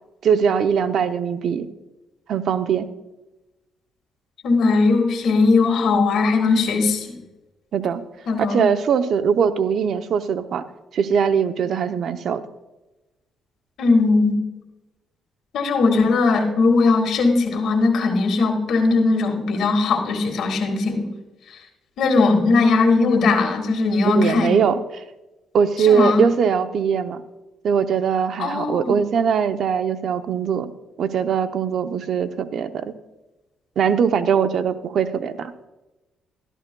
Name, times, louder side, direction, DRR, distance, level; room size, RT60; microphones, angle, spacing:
voice 1, 0.2-1.7 2.3-2.9 7.7-8.0 8.5-10.7 10.9-12.4 24.0-25.0 25.5-27.2 27.6-30.7 31.0-32.9 33.8-35.5, right 7 dB, 65° right, 10 dB, 0.6 m, -21 dB
voice 2, 4.4-7.1 8.3-8.7 13.8-14.4 15.5-21.1 21.5-21.6 22.0-24.6 25.8-26.3 28.4-28.9, left 3 dB, 70° left, 3 dB, 1.9 m, -19 dB
13.5 x 12.0 x 2.2 m, 1.1 s
cardioid pair, 90°, 0 cm